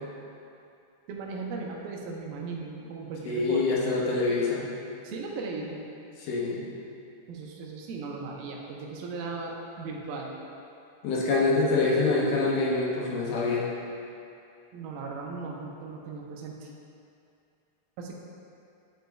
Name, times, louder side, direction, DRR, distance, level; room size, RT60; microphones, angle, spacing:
voice 1, 1.1-3.9 5.0-5.9 7.3-10.3 14.7-16.7 18.0-18.2, right 4 dB, 85° right, -1 dB, 2.5 m, -37 dB
voice 2, 3.3-4.7 6.2-6.6 11.0-13.7, left 3 dB, 75° left, -4 dB, 2.4 m, -25 dB
10.5 x 5.1 x 2.3 m, 2.6 s
omnidirectional pair, 4.1 m